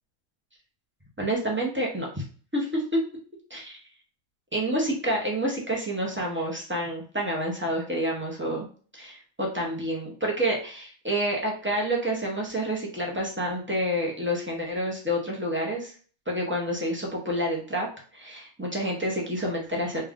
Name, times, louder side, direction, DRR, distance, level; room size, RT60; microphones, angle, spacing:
voice 1, 1.2-2.2 2.5-2.8 3.5-3.8 4.5-8.7 8.9-15.9 16.3-17.9 18.1-20.1, equal, 15° right, -2 dB, 0.5 m, -28 dB
3.3 x 2.4 x 3.5 m, 0.42 s
omnidirectional pair, 1.6 m